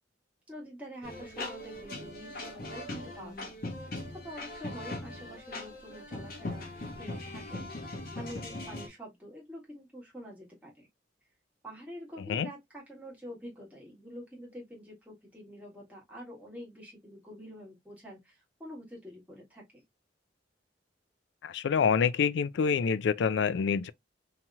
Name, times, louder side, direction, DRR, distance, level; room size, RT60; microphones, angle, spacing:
voice 1, 0.5-6.7 7.0-10.9 11.6-19.8, equal, 10° right, 1.4 m, -47 dB
sound 1, 1.0-8.9, left 2 dB, 55° left, 0.9 m, -40 dB
voice 2, 21.4-23.9, left 6 dB, 75° left, 0.3 m, -27 dB
2.9 x 2.8 x 2.3 m
head